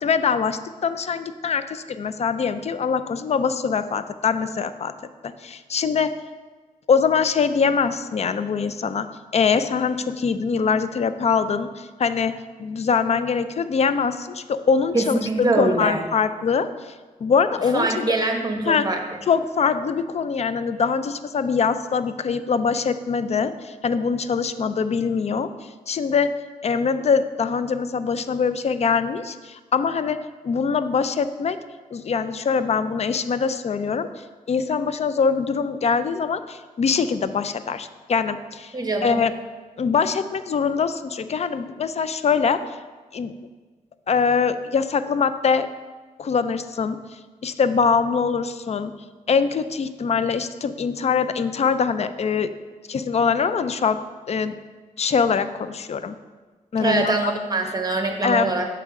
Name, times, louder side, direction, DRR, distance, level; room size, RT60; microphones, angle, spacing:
voice 1, 0.0-4.9 5.2-6.2 6.9-9.1 9.3-12.3 12.6-16.9 17.2-18.1 18.7-18.9 19.3-26.3 26.6-31.6 31.9-34.1 34.5-38.7 39.0-39.3 39.8-42.6 43.1-43.3 44.1-45.7 46.2-47.0 47.4-48.9 49.3-52.5 52.9-54.0 54.3-54.6 55.0-56.2 56.7-57.3 58.2-58.5, left 5 dB, 45° left, 12 dB, 0.4 m, -23 dB
voice 2, 14.9-16.0 17.7-19.0 38.7-39.2 56.8-58.7, right 2 dB, 25° right, 3 dB, 1.1 m, -23 dB
6.7 x 3.6 x 5.2 m, 1.4 s
cardioid pair, 60°, 15 cm